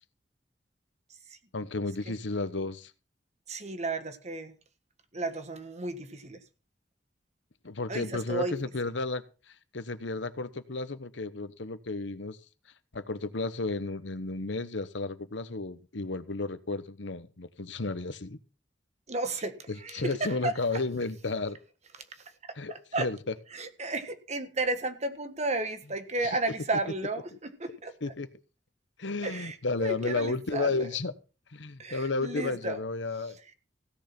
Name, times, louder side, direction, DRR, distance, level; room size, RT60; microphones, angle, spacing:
voice 1, 1.5-2.9 7.6-12.4 12.9-18.4 19.7-21.6 22.5-23.4 26.2-26.4 27.3-27.4 28.0-28.3 29.0-31.1 31.5-33.5, left 3 dB, 80° left, 1.1 m, -33 dB
voice 2, 3.5-4.5 5.1-6.4 7.9-8.5 19.1-19.5 19.8-20.5 22.9-23.1 23.5-27.2 27.6-27.9 29.2-29.5 29.8-30.7 31.8-32.8, right 2 dB, 40° right, 1.6 m, -32 dB
16.5 x 6.7 x 6.0 m
head